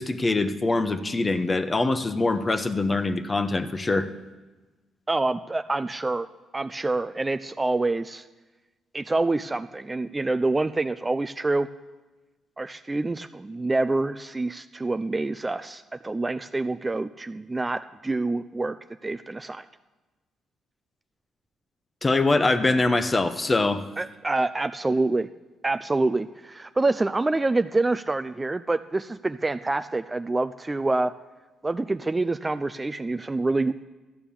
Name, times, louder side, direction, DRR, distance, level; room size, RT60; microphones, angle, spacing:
voice 1, 0.0-4.1 22.0-23.8, left 2 dB, 25° left, 10 dB, 1.0 m, -23 dB
voice 2, 5.1-6.3 6.5-8.2 8.9-11.7 12.6-18.8 19.0-19.6 24.0-25.3 25.6-31.1 31.6-33.8, right 2 dB, 20° right, 11 dB, 0.4 m, -26 dB
13.0 x 8.9 x 7.1 m, 1.2 s
cardioid pair, 90°, 0 cm